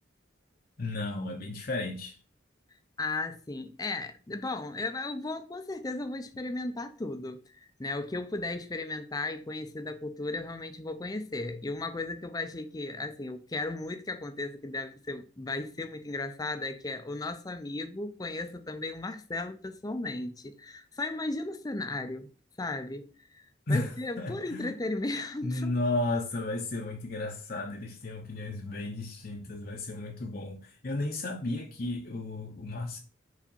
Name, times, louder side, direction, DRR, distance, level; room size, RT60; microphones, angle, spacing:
voice 1, 0.8-2.2 23.7-24.7 25.4-33.0, left 2 dB, 50° left, 0.8 m, -33 dB
voice 2, 3.0-22.3 22.6-23.1 23.3-25.7, left 2 dB, 20° left, 0.5 m, -35 dB
5.0 x 4.0 x 5.5 m
head